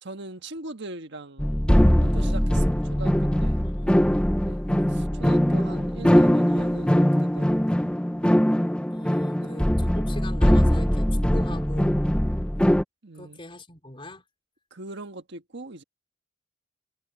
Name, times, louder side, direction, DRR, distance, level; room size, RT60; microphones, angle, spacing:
voice 1, 0.0-1.7 2.0-3.6 4.4-4.6 4.9-7.8 9.4-9.7 13.0-13.4 14.7-15.8, right 2 dB, 60° right, 1.5 m, -41 dB
sound 1, 1.4-12.8, equal, 5° left, 0.6 m, -21 dB
voice 2, 3.6-4.2 8.9-12.1 13.1-14.2, left 2 dB, 25° left, 3.8 m, -42 dB
head